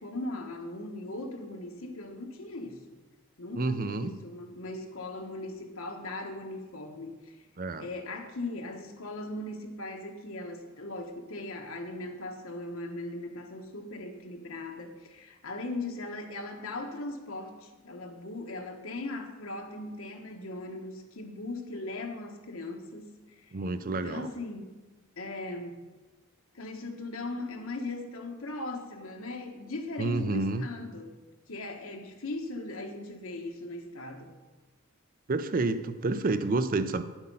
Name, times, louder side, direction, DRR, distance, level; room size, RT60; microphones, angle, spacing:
voice 1, 0.0-3.0 3.4-7.2 7.8-23.1 23.9-24.8 25.2-25.8 26.5-31.1 31.5-34.4, left 2 dB, 75° left, 4 dB, 1.3 m, -39 dB
voice 2, 3.6-4.1 7.6-7.9 23.5-24.3 30.0-30.6 35.3-37.0, right 3 dB, 45° right, 11 dB, 0.5 m, -29 dB
9.6 x 7.9 x 5.5 m, 1.2 s
head